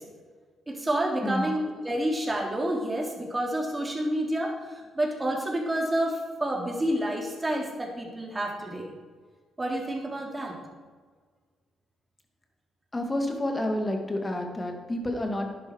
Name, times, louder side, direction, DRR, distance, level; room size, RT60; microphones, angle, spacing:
voice 1, 0.7-8.9 9.6-10.5, right 1 dB, 20° right, -1 dB, 3.6 m, -29 dB
voice 2, 12.9-15.7, left 1 dB, 25° left, 3 dB, 2.5 m, -29 dB
11.0 x 10.5 x 4.9 m, 1.5 s
hypercardioid pair, 45°, 0 cm